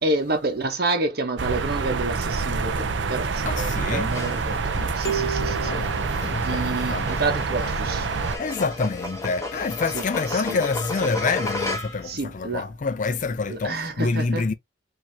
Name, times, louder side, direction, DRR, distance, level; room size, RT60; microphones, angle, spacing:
voice 1, 0.0-5.8 6.4-8.1 9.9-10.6 11.0-11.1 12.0-12.7 13.5-14.5, right 2 dB, 55° right, 1.1 m, -29 dB
sound 1, 1.4-8.4, right 4 dB, 70° right, 0.6 m, -27 dB
voice 2, 3.5-4.1 4.5-7.1 8.4-14.5, left 4 dB, 40° left, 0.4 m, -27 dB
sound 2, 4.1-12.2, left 2 dB, 15° left, 1.2 m, -34 dB
sound 3, 5.0-6.9, right 6 dB, 60° left, 1.0 m, -32 dB
4.6 x 2.8 x 2.7 m
head